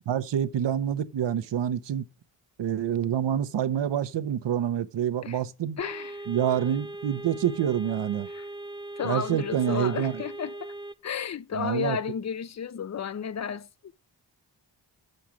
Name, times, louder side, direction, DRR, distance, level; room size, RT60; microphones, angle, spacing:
voice 1, 0.0-2.0 2.6-5.8 6.3-8.3 9.0-10.2 11.5-12.0, right 9 dB, 80° right, 0.9 m, -27 dB
voice 2, 5.8-6.3 8.3-8.5 9.0-10.7 11.0-13.9, left 7 dB, 40° left, 0.6 m, -33 dB
sound 1, 5.8-10.9, right 1 dB, 10° right, 0.6 m, -39 dB
7.1 x 6.6 x 7.6 m
wide cardioid pair, 100°, 42 cm